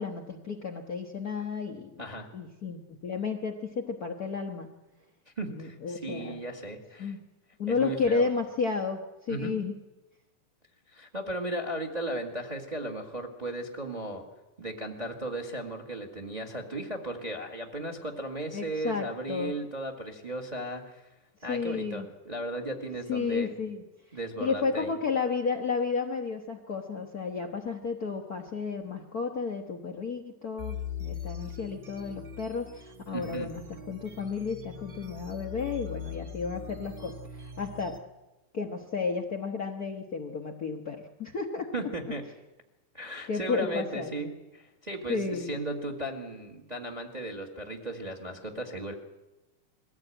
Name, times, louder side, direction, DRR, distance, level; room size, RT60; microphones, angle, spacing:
voice 1, 0.0-2.0 2.3-4.7 5.5-6.4 7.0-7.2 7.6-9.7 18.5-19.5 21.5-22.1 23.1-23.8 24.4-38.0 38.5-41.7 43.3-44.1 45.1-45.6, left 5 dB, 85° left, 2 dB, 0.8 m, -32 dB
voice 2, 2.0-2.3 5.4-7.1 7.7-8.3 9.3-9.6 10.9-14.2 14.6-21.1 21.4-23.5 24.1-24.9 33.1-33.5 41.7-42.2 42.9-48.9, right 1 dB, 25° right, 4 dB, 1.0 m, -36 dB
sound 1, 30.6-38.0, left 7 dB, 60° right, 0.5 m, -41 dB
21.5 x 15.5 x 9.0 m, 1.0 s
omnidirectional pair, 3.7 m